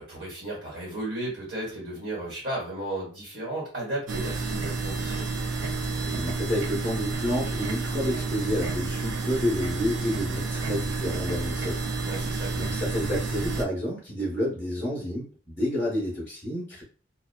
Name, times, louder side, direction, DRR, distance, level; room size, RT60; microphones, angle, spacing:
voice 1, 0.0-5.2 12.1-12.7, right 1 dB, 50° right, -4 dB, 1.2 m, -34 dB
sound 1, 4.1-13.6, right 3 dB, 75° right, 0.4 m, -30 dB
voice 2, 6.0-11.9 12.3-16.8, equal, 10° left, -7 dB, 0.8 m, -30 dB
2.7 x 2.2 x 2.2 m, 0.39 s
head